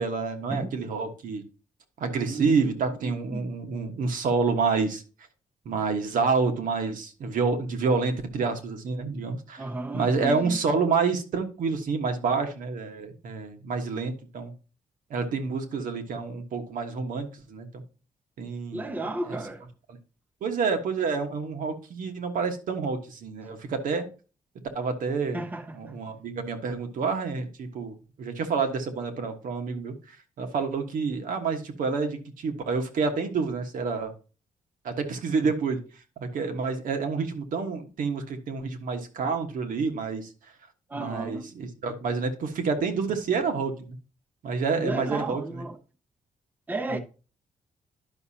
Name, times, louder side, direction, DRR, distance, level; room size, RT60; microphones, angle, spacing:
voice 1, 0.0-1.4 2.0-5.0 5.6-14.5 15.1-17.8 18.4-19.0 19.3-19.4 19.9-20.0 20.4-24.1 24.7-25.4 25.7-34.1 34.8-35.8 36.2-40.3 40.9-44.0 44.4-45.6 46.9-47.0, right 4 dB, 75° right, 1.4 m, -28 dB
voice 2, 2.3-3.5 9.6-10.6 18.7-19.6 25.3-26.0 40.9-41.5 44.8-45.8 46.7-47.0, right 2 dB, 15° right, 0.6 m, -34 dB
10.5 x 6.1 x 2.8 m
wide cardioid pair, 155°, 14 cm